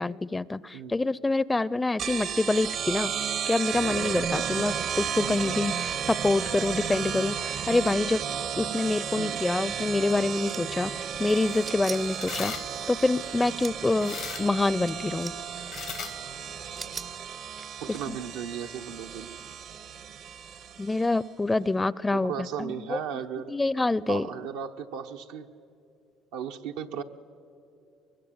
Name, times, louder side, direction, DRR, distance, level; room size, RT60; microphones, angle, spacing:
voice 1, 0.0-3.1 3.5-8.2 8.6-10.9 11.2-12.5 12.9-15.3 17.9-18.2 20.8-23.0 23.5-24.3, left 2 dB, 15° left, 21 dB, 0.5 m, -26 dB
sound 1, 2.0-21.1, right 8 dB, 65° right, 0.9 m, -33 dB
sound 2, 10.0-10.7 11.6-12.4 13.3-13.8 14.9-15.4 15.7-15.8 16.8-17.1, right 5 dB, 40° right, 0.6 m, -40 dB
sound 3, 11.1-17.2, left 9 dB, 65° left, 1.1 m, -42 dB
voice 2, 17.8-19.4 22.2-23.5 24.1-25.5 26.3-27.0, right 8 dB, 85° right, 4 dB, 1.0 m, -36 dB
23.0 x 22.0 x 8.7 m, 2.7 s
supercardioid pair, 75°, 0 cm